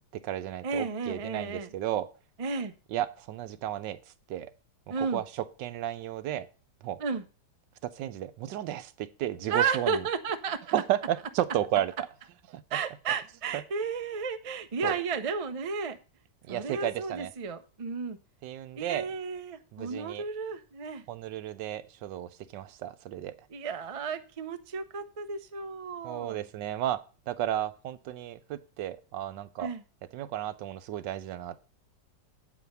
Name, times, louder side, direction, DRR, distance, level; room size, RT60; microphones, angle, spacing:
voice 1, 0.1-2.1 2.9-4.0 4.3-4.5 4.9-6.5 6.8-7.0 7.8-10.0 10.7-12.1 12.5-12.8 13.5-13.6 14.8-15.0 16.5-17.3 18.4-19.1 19.7-20.2 21.1-23.3 26.0-29.7 30.1-31.6, right 12 dB, 85° right, 13 dB, 1.4 m, -33 dB
voice 2, 0.6-1.7 2.4-2.7 4.9-5.2 7.0-7.2 9.5-10.6 12.7-16.0 16.5-18.2 18.8-21.0 23.5-26.4 29.6-29.8, right 5 dB, 65° right, 9 dB, 0.3 m, -33 dB
8.4 x 5.0 x 6.7 m, 0.35 s
omnidirectional pair, 1.9 m